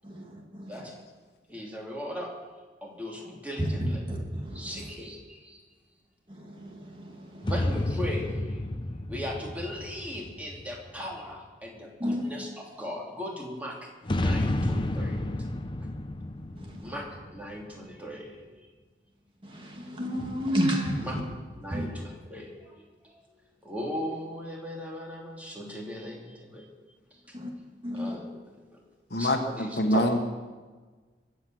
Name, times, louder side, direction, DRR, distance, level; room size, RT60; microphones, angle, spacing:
voice 1, 0.0-0.7 3.6-4.7 6.4-7.5 12.0-12.3 16.6-16.9 19.4-21.2 21.7-21.9 27.3-27.5 27.8-28.2 29.9-30.0, equal, 30° right, 0 dB, 2.3 m, -31 dB
voice 2, 1.5-2.3 2.8-4.0 4.5-5.6 7.5-8.6 9.1-15.3 16.8-18.4 21.0-21.2 21.6-26.7 27.9-28.8 29.1-30.2, equal, 10° right, -2 dB, 3.0 m, -38 dB
sound 1, 7.4-11.1 14.0-17.8, left 1 dB, 25° left, 0.8 m, -31 dB
voice 3, 29.1-30.2, left 1 dB, 60° left, 5 dB, 1.5 m, -25 dB
23.0 x 7.9 x 7.8 m, 1.4 s
head